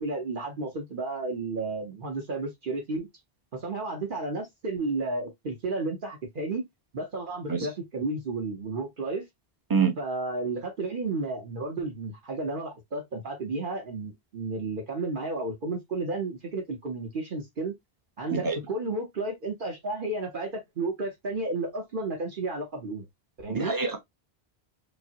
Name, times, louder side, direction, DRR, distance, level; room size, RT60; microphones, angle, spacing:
voice 1, 0.0-3.1 3.5-6.6 6.9-9.3 10.0-17.7 18.2-23.1 23.4-23.7, right 3 dB, 55° right, 1.0 m, -32 dB
voice 2, 23.5-24.0, right 5 dB, 25° right, 0.6 m, -25 dB
5.0 x 2.1 x 2.7 m
omnidirectional pair, 1.1 m